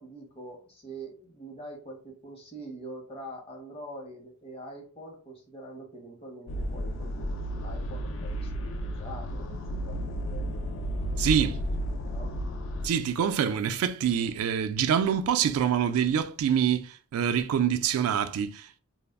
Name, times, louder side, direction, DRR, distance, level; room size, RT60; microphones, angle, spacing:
voice 1, 0.0-10.9 11.4-11.5 12.0-12.3, right 1 dB, 25° left, 0.7 m, -44 dB
sound 1, 6.5-12.9, equal, 60° left, 0.3 m, -32 dB
voice 2, 11.2-11.5 12.8-18.8, right 8 dB, 90° right, 0.3 m, -26 dB
2.2 x 2.0 x 3.4 m
head